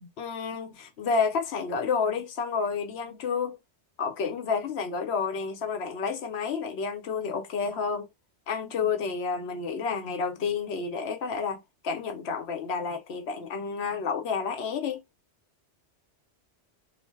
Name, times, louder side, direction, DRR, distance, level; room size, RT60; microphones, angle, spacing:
voice 1, 0.0-3.6 4.0-8.1 8.5-15.0, left 5 dB, 70° left, 0.8 m, -30 dB
2.5 x 2.0 x 3.3 m
omnidirectional pair, 1.2 m